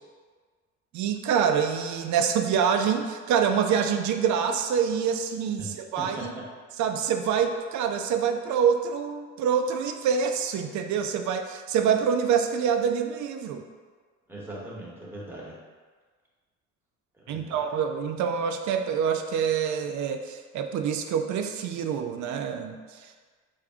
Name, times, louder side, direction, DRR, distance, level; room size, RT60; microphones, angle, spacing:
voice 1, 0.9-6.3 6.8-13.6 17.3-23.1, right 7 dB, 70° right, 6 dB, 0.4 m, -26 dB
voice 2, 6.0-6.4 14.3-15.6 17.2-17.6, right 1 dB, 10° right, -6 dB, 1.0 m, -40 dB
3.4 x 2.7 x 3.5 m, 1.5 s
cardioid pair, 90°, 30 cm